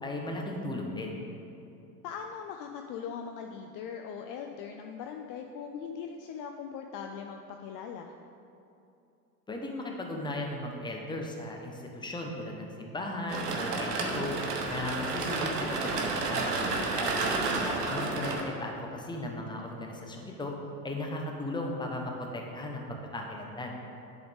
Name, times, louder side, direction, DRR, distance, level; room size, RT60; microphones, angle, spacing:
voice 1, 0.0-1.2 9.5-14.3 14.7-17.2 17.9-20.5 20.8-22.8 23.1-23.8, left 1 dB, 10° left, 1 dB, 0.9 m, -36 dB
voice 2, 2.0-8.1 17.6-18.2, left 7 dB, 45° left, 4 dB, 0.5 m, -40 dB
sound 1, 13.3-18.4, right 3 dB, 80° right, 1.0 m, -31 dB
10.5 x 3.9 x 3.5 m, 2.7 s
hypercardioid pair, 85°, 46 cm